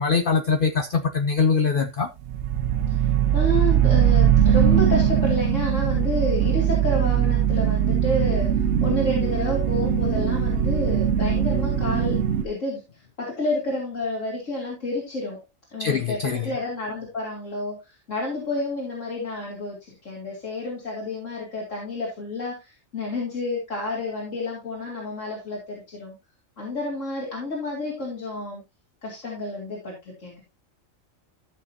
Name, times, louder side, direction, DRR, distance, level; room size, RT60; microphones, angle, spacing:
voice 1, 0.0-2.1 15.8-16.5, left 5 dB, 50° left, 0.8 m, -23 dB
sound 1, 2.3-12.4, right 9 dB, 65° right, 0.9 m, -21 dB
voice 2, 2.9-8.6 8.8-15.4 15.7-26.2 26.6-28.6 29.0-30.4, left 2 dB, 70° left, 3.3 m, -30 dB
14.0 x 6.6 x 2.8 m
omnidirectional pair, 1.4 m